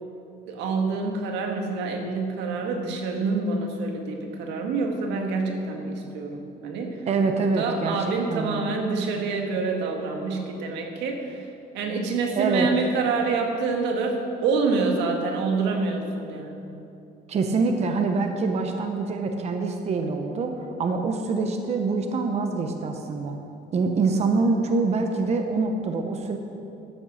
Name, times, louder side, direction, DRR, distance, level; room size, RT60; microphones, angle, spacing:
voice 1, 0.5-7.0 7.6-11.5 11.7-16.6, right 4 dB, 90° right, 2 dB, 1.8 m, -27 dB
voice 2, 7.1-8.0 8.3-8.8 12.4-12.7 17.3-20.5 20.8-23.4 23.7-26.4, right 4 dB, 40° right, 4 dB, 0.9 m, -25 dB
12.0 x 8.6 x 6.3 m, 2.7 s
cardioid pair, 130°, 18 cm